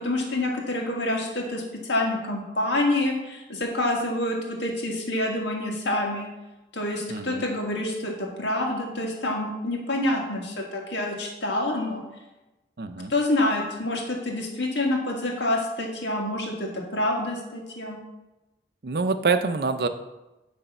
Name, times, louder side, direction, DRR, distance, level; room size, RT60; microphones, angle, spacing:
voice 1, 0.0-6.3 6.7-12.0 13.1-18.0, left 1 dB, 85° left, 0 dB, 1.8 m, -27 dB
voice 2, 7.1-7.4 12.8-13.1 18.8-19.9, right 4 dB, 60° right, 9 dB, 0.5 m, -25 dB
10.0 x 3.4 x 6.7 m, 1.0 s
head